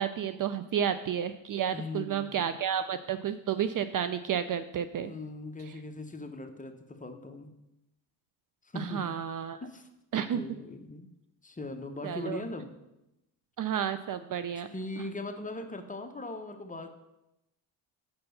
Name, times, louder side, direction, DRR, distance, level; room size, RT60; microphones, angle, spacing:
voice 1, 0.0-5.1 8.8-9.6 10.1-10.4 12.0-12.4 13.6-14.7, right 9 dB, 45° right, 11 dB, 0.4 m, -31 dB
voice 2, 1.7-2.5 5.0-7.5 8.6-9.2 9.6-9.9 10.3-11.1 11.4-12.7 14.5-16.9, left 2 dB, 15° left, 5 dB, 0.9 m, -40 dB
6.8 x 4.4 x 6.5 m, 0.90 s
cardioid pair, 80°, 48 cm